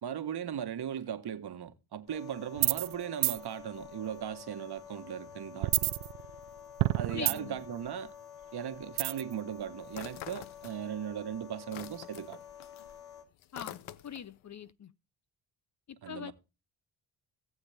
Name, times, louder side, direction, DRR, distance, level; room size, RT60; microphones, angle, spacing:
voice 1, 0.0-5.9 7.0-8.1 8.5-12.4 16.0-16.3, right 9 dB, 55° right, 1.4 m, -38 dB
sound 1, 2.1-13.2, left 9 dB, 55° left, 2.6 m, -50 dB
sound 2, 2.6-2.9 3.2-3.4 5.6-6.5 6.8-7.6 9.0-9.3, right 19 dB, 90° right, 0.6 m, -28 dB
voice 2, 7.1-7.6 13.5-14.9 15.9-16.3, left 8 dB, 35° left, 0.7 m, -43 dB
sound 3, 9.9-11.1 11.4-14.4, left 13 dB, 90° left, 0.8 m, -46 dB
18.0 x 7.2 x 3.4 m
cardioid pair, 70°, 46 cm